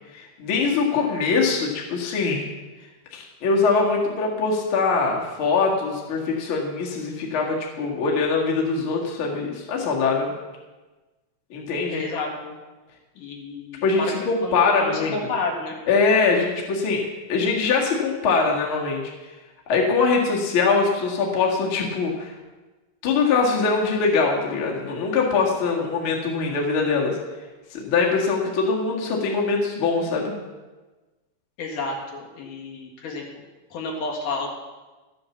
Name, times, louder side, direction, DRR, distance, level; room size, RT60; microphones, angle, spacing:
voice 1, 0.1-2.4 3.1-10.3 11.5-12.0 13.8-15.1 15.9-17.0 17.3-19.0 19.7-22.3 23.0-27.2 27.7-30.3, left 4 dB, 85° left, -2 dB, 1.1 m, -22 dB
voice 2, 11.9-12.6 13.1-14.1 14.4-15.7 31.6-33.2 33.7-34.5, left 3 dB, 55° left, -1 dB, 2.7 m, -30 dB
13.0 x 7.8 x 7.1 m, 1.2 s
omnidirectional pair, 5.6 m